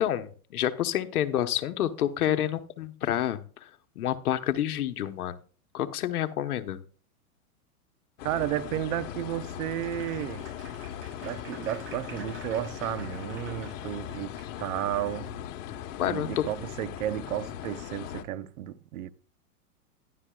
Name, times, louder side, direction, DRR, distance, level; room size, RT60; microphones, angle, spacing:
voice 1, 0.0-3.7 4.0-5.4 5.7-6.8 16.0-16.4, left 11 dB, 75° left, 1.2 m, -28 dB
sound 1, 8.2-18.2, left 10 dB, 55° left, 1.4 m, -39 dB
voice 2, 8.2-10.5 11.2-15.3 16.0-19.1, right 13 dB, 65° right, 1.0 m, -33 dB
Applause, 9.8-15.4, right 3 dB, 25° right, 5.7 m, -49 dB
13.5 x 11.5 x 2.4 m
hypercardioid pair, 125°, 45 cm